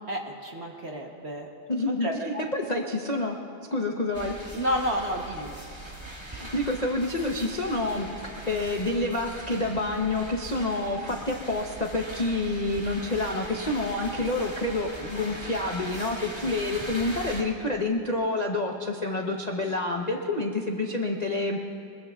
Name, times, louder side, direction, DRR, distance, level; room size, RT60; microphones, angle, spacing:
voice 1, 0.1-1.5 2.0-2.4 4.5-5.5, equal, 40° right, 1 dB, 1.1 m, -30 dB
voice 2, 1.7-3.4 3.7-4.3 6.3-8.1 8.5-21.6, left 2 dB, 35° left, 0 dB, 0.6 m, -28 dB
sound 1, 4.1-17.4, right 1 dB, 15° right, 1.8 m, -40 dB
25.5 x 21.5 x 2.4 m, 2.5 s
omnidirectional pair, 2.1 m